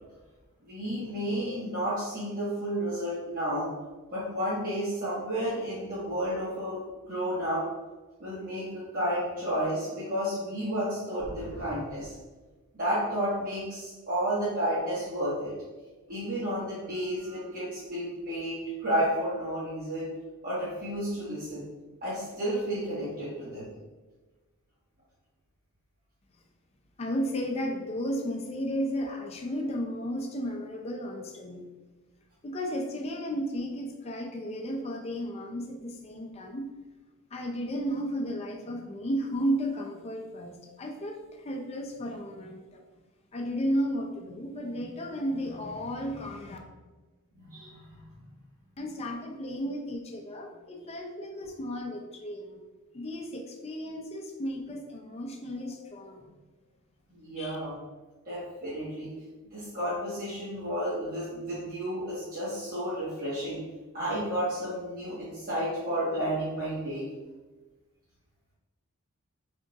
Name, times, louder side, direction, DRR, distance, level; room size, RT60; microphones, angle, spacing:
voice 1, 0.7-3.7 4.1-6.8 7.1-7.6 8.2-12.1 12.7-15.5 16.1-20.1 20.4-21.7 22.0-23.7 47.3-48.0 57.1-57.7 58.2-59.1 59.5-63.6 63.9-67.1, equal, 40° right, -11 dB, 1.2 m, -31 dB
voice 2, 27.0-31.6 32.4-36.7 37.3-42.8 43.3-46.6 48.8-52.6 52.9-56.3 57.4-57.6, equal, 30° left, 2 dB, 0.5 m, -33 dB
3.6 x 2.4 x 3.9 m, 1.2 s
head